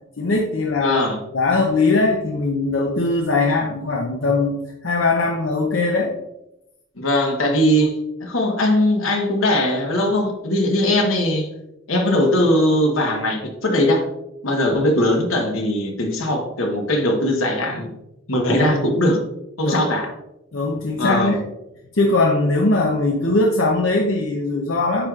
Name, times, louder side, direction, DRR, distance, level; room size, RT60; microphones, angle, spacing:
voice 1, 0.2-1.0 1.3-6.1 18.6-18.7 19.6-19.9 20.5-21.4 21.9-25.1, left 2 dB, 70° left, 0 dB, 0.7 m, -20 dB
voice 2, 0.8-1.2 7.0-7.9 8.2-11.5 11.9-14.0 14.4-17.9 18.3-19.2 19.6-20.1 21.0-21.4, left 1 dB, 90° left, 3 dB, 1.2 m, -20 dB
8.5 x 4.8 x 2.4 m, 0.90 s
head